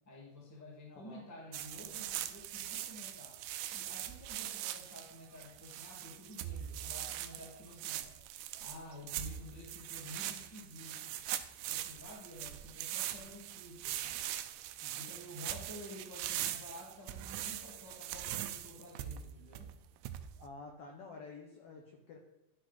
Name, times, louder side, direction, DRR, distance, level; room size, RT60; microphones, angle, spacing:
voice 1, 0.0-3.4 3.7-8.1 8.6-11.2 11.7-14.3 14.9-19.7, left 1 dB, 10° left, -2 dB, 0.8 m, -51 dB
voice 2, 0.9-1.2 14.8-15.0 20.4-22.2, left 3 dB, 75° left, 2 dB, 1.4 m, -50 dB
sound 1, 1.5-20.5, right 12 dB, 80° right, 2.0 m, -42 dB
12.0 x 4.8 x 4.0 m, 0.95 s
omnidirectional pair, 4.0 m